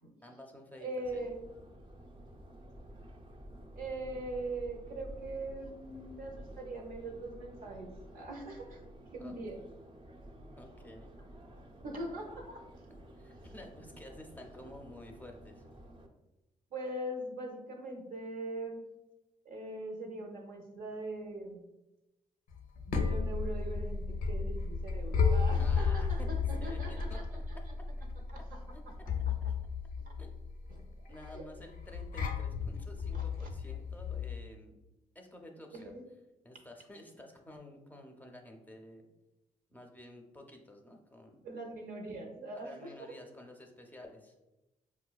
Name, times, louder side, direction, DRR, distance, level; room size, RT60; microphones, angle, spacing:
voice 1, 0.2-1.3 9.2-9.3 10.6-11.1 13.2-15.7 25.6-27.9 28.7-29.1 29.4-29.5 30.2-30.3 31.1-34.7 35.1-35.9 36.4-39.1 39.7-41.4 42.5-44.3, left 1 dB, 10° left, 2 dB, 0.5 m, -52 dB
voice 2, 0.8-1.5 3.8-9.6 11.8-12.6 16.7-18.8 19.4-21.7 22.9-27.6 28.3-28.6 28.9-29.0 29.3-29.4 30.7-31.5 33.1-33.5 35.7-36.0 41.4-43.1, right 2 dB, 75° right, 2 dB, 0.7 m, -42 dB
Subway metro underground, 1.0-16.1, right 1 dB, 35° right, 0.5 m, -51 dB
sound 1, 22.5-34.4, left 5 dB, 80° left, 0.5 m, -33 dB
4.8 x 2.2 x 2.3 m, 0.98 s
cardioid pair, 80°, 14 cm